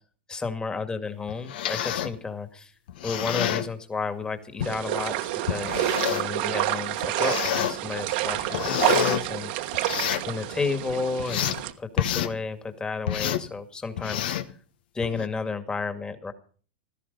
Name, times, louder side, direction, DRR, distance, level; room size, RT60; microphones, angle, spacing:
voice 1, 0.3-2.7 3.0-9.8 10.2-14.4 14.9-16.3, left 4 dB, 15° left, 9 dB, 2.1 m, -32 dB
sound 1, 1.3-2.2 2.9-3.7 4.6-4.7 5.5-6.3 7.0-7.7 8.2-9.2 9.7-10.3 10.8-11.6 12.0-12.3 13.1-13.5 14.0-14.5 15.0-15.3, left 10 dB, 70° left, 1.2 m, -28 dB
sound 2, 4.6-11.7, right 15 dB, 60° right, 1.4 m, -28 dB
16.0 x 13.5 x 5.4 m, 0.42 s
hypercardioid pair, 115°, 6 cm